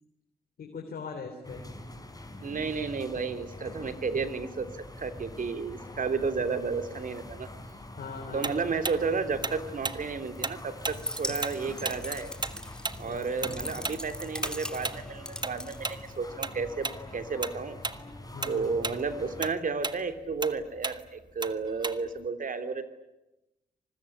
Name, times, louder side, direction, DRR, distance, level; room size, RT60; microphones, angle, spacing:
voice 1, 0.6-1.6 8.0-8.5 13.0-13.7 18.3-18.7, left 5 dB, 70° left, 4 dB, 3.5 m, -41 dB
sound 1, 1.4-19.5, left 1 dB, 25° left, 5.1 m, -44 dB
voice 2, 2.4-7.5 8.3-12.3 13.0-17.8 18.5-22.8, right 4 dB, 60° right, 9 dB, 3.2 m, -32 dB
Tick-tock, 8.4-11.6 11.8-16.6 16.8-17.0 17.4-18.0 18.3-22.3, right 3 dB, 30° right, 1.6 m, -35 dB
sound 2, 10.8-16.5, left 1 dB, 5° left, 1.9 m, -40 dB
25.0 x 21.0 x 10.0 m, 0.95 s
supercardioid pair, 50°, 16 cm